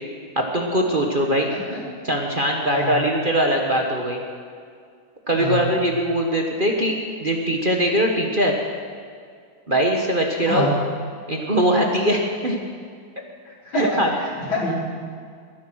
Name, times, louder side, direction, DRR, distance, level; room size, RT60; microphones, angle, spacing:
voice 1, 0.4-1.5 2.0-4.2 5.3-8.6 9.7-10.7 11.3-12.6 13.7-14.1, equal, 30° right, 0 dB, 1.3 m, -21 dB
voice 2, 1.5-1.8 2.7-3.0 5.4-5.6 10.4-10.7 13.4-13.8 14.2-14.7, left 1 dB, 80° left, -5 dB, 5.1 m, -27 dB
21.5 x 11.0 x 6.3 m, 2.1 s
omnidirectional pair, 2.2 m